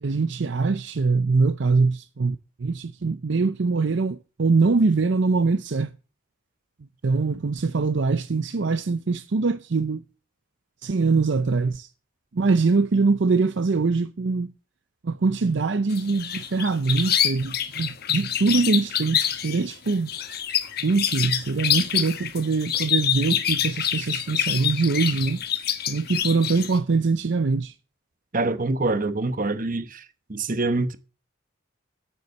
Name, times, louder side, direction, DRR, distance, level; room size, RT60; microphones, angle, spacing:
voice 1, 0.0-5.9 7.0-10.0 10.8-11.9 12.3-14.5 15.0-20.1 20.8-25.4 25.9-27.7, right 4 dB, 60° right, 0.5 m, -23 dB
sound 1, 15.9-26.8, left 10 dB, 50° left, 1.1 m, -26 dB
voice 2, 28.3-30.0 30.3-31.0, right 2 dB, 40° right, 1.0 m, -25 dB
9.6 x 9.0 x 6.4 m
head